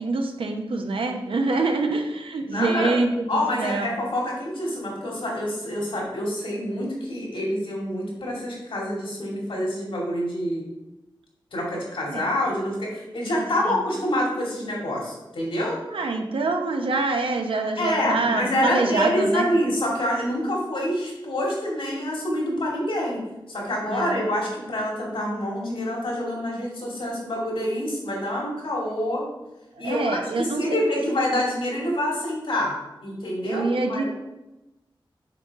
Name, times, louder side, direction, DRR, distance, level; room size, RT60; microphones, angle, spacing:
voice 1, 0.0-3.9 12.1-12.2 13.4-13.8 15.9-19.5 23.9-24.3 29.8-30.7 33.4-34.0, right 3 dB, 90° right, 3 dB, 0.9 m, -26 dB
voice 2, 2.4-2.9 3.3-10.7 11.5-15.8 17.8-23.2 23.5-29.2 29.8-34.0, left 1 dB, 80° left, -3 dB, 2.5 m, -27 dB
6.9 x 5.5 x 3.6 m, 0.99 s
wide cardioid pair, 105°, 9 cm